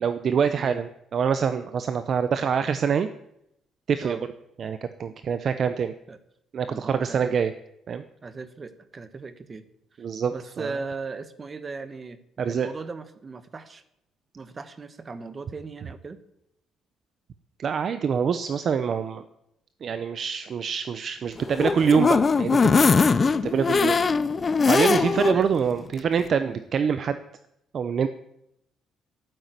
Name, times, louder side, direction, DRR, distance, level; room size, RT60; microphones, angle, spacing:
voice 1, 0.0-3.1 3.9-4.2 4.6-5.9 6.5-7.5 7.9-8.0 10.0-10.7 12.4-12.7 17.6-19.2 19.8-22.8 23.2-24.0 24.7-27.2 27.7-28.1, right 7 dB, 35° right, 11 dB, 0.7 m, -25 dB
voice 2, 6.7-7.4 8.2-9.6 10.3-13.8 14.3-16.2 23.7-23.9 25.3-25.5, right 4 dB, 20° right, 12 dB, 1.1 m, -37 dB
sound 1, 21.4-25.4 25.8-25.9 26.2-26.3, left 4 dB, 25° left, 0.6 m, -21 dB
12.5 x 9.4 x 9.3 m, 0.79 s
cardioid pair, 170°, 0 cm